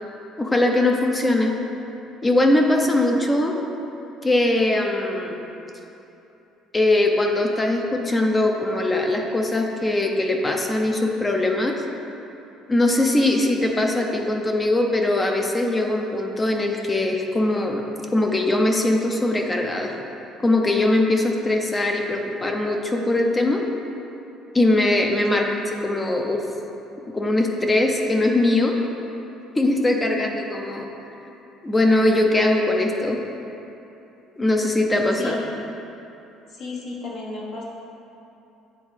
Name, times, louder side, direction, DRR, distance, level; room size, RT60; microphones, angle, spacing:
voice 1, 0.4-1.5 2.2-3.5 4.2-5.5 6.7-11.7 12.7-17.8 18.1-19.9 20.4-23.6 24.5-25.5 25.8-26.4 27.1-28.8 29.6-30.9 31.6-33.2 34.4-35.4, left 2 dB, 20° left, 2 dB, 0.6 m, -21 dB
voice 2, 29.9-30.3 35.1-35.5 36.5-37.6, left 3 dB, 60° left, -4 dB, 1.3 m, -34 dB
9.2 x 3.5 x 3.3 m, 2.9 s
cardioid pair, 105°, 0 cm